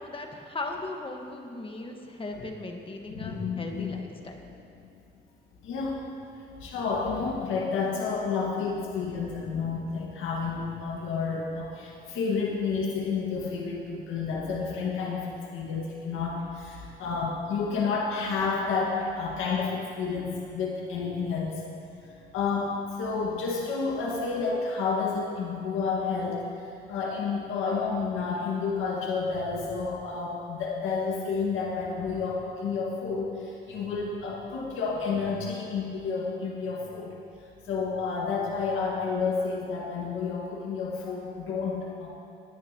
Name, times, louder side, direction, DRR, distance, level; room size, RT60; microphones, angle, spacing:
voice 1, 0.0-4.4, left 2 dB, 25° left, 3 dB, 1.4 m, -38 dB
voice 2, 3.1-3.9 5.6-6.0 6.4-21.6 22.0-37.1 37.7-42.1, left 4 dB, 90° left, -3 dB, 1.8 m, -30 dB
19.5 x 9.9 x 3.0 m, 2.7 s
cardioid pair, 90°, 20 cm